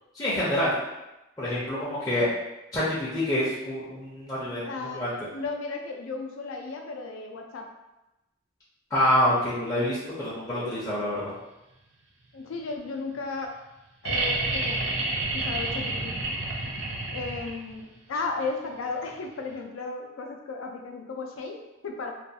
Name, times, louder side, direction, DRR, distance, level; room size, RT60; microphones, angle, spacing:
voice 1, 0.2-0.7 1.4-2.3 2.7-4.6 4.9-5.1 8.9-11.3, left 1 dB, 15° left, -10 dB, 0.5 m, -26 dB
voice 2, 4.6-7.7 12.3-13.5 14.0-14.9 15.3-16.2 17.1-22.1, left 3 dB, 80° left, 3 dB, 0.4 m, -35 dB
sound 1, 14.0-17.8 19.5-19.6, right 2 dB, 60° right, 0.5 m, -29 dB
2.3 x 2.2 x 2.6 m, 0.96 s
head